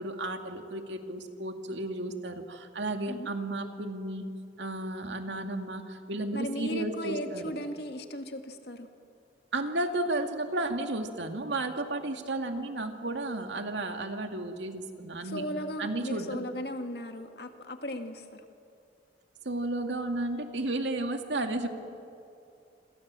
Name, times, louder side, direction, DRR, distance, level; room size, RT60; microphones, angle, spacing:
voice 1, 0.0-4.3 4.6-7.5 9.5-15.4 15.8-16.4 19.4-21.7, right 2 dB, 90° right, 5 dB, 2.3 m, -33 dB
voice 2, 6.3-8.9 15.2-18.4, equal, 65° left, 6 dB, 2.0 m, -36 dB
27.5 x 26.5 x 7.6 m, 2.6 s
head